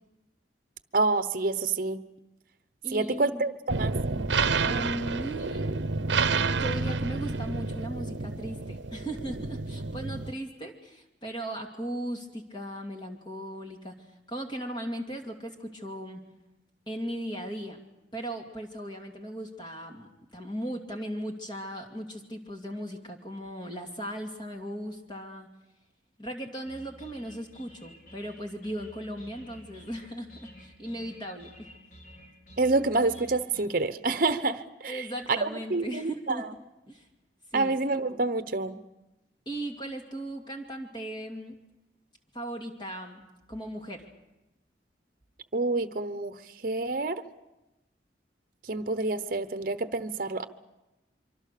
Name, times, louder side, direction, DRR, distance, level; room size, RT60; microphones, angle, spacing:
voice 1, 0.9-2.0 2.9-3.9 32.6-36.5 37.5-38.8 45.5-46.4 46.6-47.2 48.7-50.4, right 3 dB, 50° right, 11 dB, 1.0 m, -28 dB
voice 2, 2.8-3.4 4.6-5.8 6.5-16.2 16.9-17.8 18.1-25.5 26.2-31.7 34.9-36.4 36.9-37.1 37.5-37.7 39.5-41.6 42.3-44.1, right 1 dB, 25° left, 2 dB, 2.6 m, -37 dB
sound 1, 3.7-10.3, right 4 dB, 85° right, 0.9 m, -29 dB
sound 2, 26.6-33.6, equal, 50° left, 4.5 m, -51 dB
25.5 x 24.5 x 6.8 m, 0.99 s
head